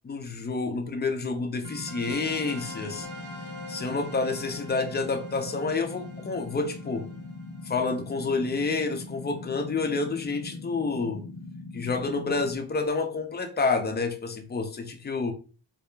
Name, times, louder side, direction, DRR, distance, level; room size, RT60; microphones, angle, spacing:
voice 1, 0.0-3.1 3.7-7.1 7.7-11.2 11.7-15.3, left 4 dB, 25° left, 0.4 m, -29 dB
sound 1, 1.6-12.6, left 2 dB, 65° left, 0.6 m, -41 dB
sound 2, 1.6-8.7, left 1 dB, 25° right, 0.8 m, -45 dB
2.3 x 2.1 x 3.0 m
cardioid pair, 90°, 45 cm